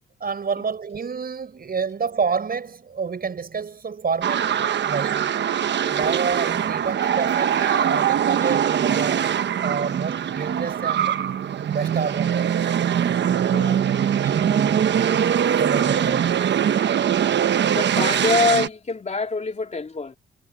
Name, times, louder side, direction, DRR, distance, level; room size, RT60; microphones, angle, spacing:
voice 1, 0.2-4.5 4.8-5.3 5.9-9.3 9.6-11.2 11.7-12.6 14.2-15.0 15.6-16.4, right 5 dB, 50° right, 6.2 m, -28 dB
sound 1, 4.2-18.7, right 9 dB, 65° right, 1.1 m, -22 dB
voice 2, 13.5-13.8 17.7-20.2, left 3 dB, 35° left, 3.2 m, -25 dB
cardioid pair, 65°, 20 cm